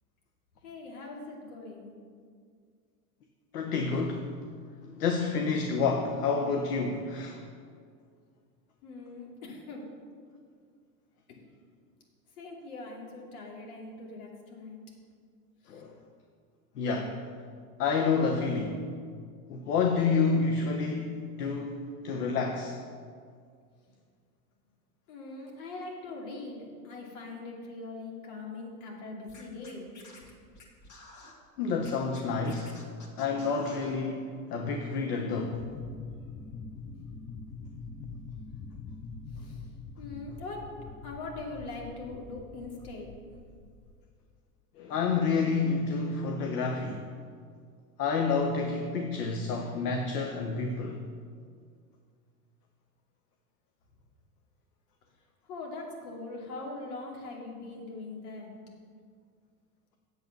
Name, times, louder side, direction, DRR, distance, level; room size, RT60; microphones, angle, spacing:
voice 1, 0.6-1.9 8.8-9.8 12.4-14.8 15.7-15.8 25.1-29.9 39.3-39.6 40.0-40.8 41.0-43.1 55.5-58.5, left 3 dB, 70° left, -1 dB, 2.7 m, -41 dB
voice 2, 3.5-4.3 4.9-7.4 15.7-16.0 16.7-17.2 17.8-18.8 19.5-22.8 31.6-32.8 33.2-35.6 44.8-47.1 48.0-51.0, left 4 dB, 85° left, 3 dB, 1.0 m, -29 dB
Scratching (performance technique), 29.3-31.3 31.8-34.0, left 2 dB, 40° left, 2.2 m, -51 dB
sound 1, 35.4-43.9, left 4 dB, 15° left, 0.7 m, -44 dB
8.3 x 7.8 x 6.0 m, 2.1 s
hypercardioid pair, 95°, 46 cm